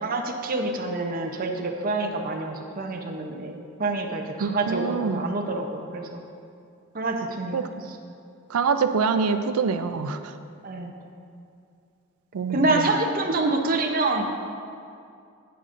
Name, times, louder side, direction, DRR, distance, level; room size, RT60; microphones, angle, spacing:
voice 1, 0.0-6.2 6.9-7.6 7.8-8.0 10.6-10.9 12.5-14.3, right 2 dB, 40° right, 3 dB, 0.7 m, -27 dB
voice 2, 4.4-5.2 7.5-7.6 8.5-10.2 12.3-12.8, right 5 dB, 80° right, 10 dB, 0.4 m, -25 dB
10.0 x 8.8 x 2.6 m, 2.4 s
head